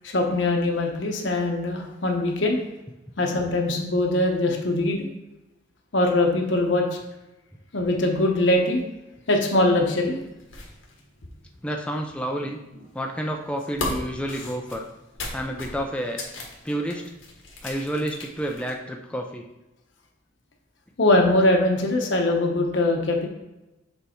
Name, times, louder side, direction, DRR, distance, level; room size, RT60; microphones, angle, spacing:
voice 1, 0.0-2.6 3.2-5.0 5.9-6.9 7.7-8.8 9.3-10.2 21.0-23.3, left 2 dB, 70° left, 1 dB, 1.0 m, -22 dB
sound 1, 9.8-18.8, left 2 dB, 90° left, 1.6 m, -38 dB
voice 2, 11.6-12.6 12.9-14.9 15.3-16.2 16.6-17.1 17.6-19.4, equal, 5° left, 2 dB, 0.4 m, -29 dB
6.8 x 3.4 x 4.4 m, 0.99 s
head